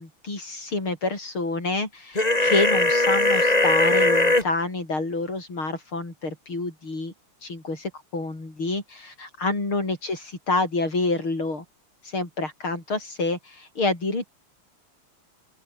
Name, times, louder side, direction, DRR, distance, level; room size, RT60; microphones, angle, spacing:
voice 1, 0.0-7.1 7.4-11.6 12.0-14.3, left 3 dB, 70° left, 8.1 m, -28 dB
sound 1, 2.2-4.4, left 2 dB, 15° left, 3.1 m, -20 dB
open air
omnidirectional pair, 2.4 m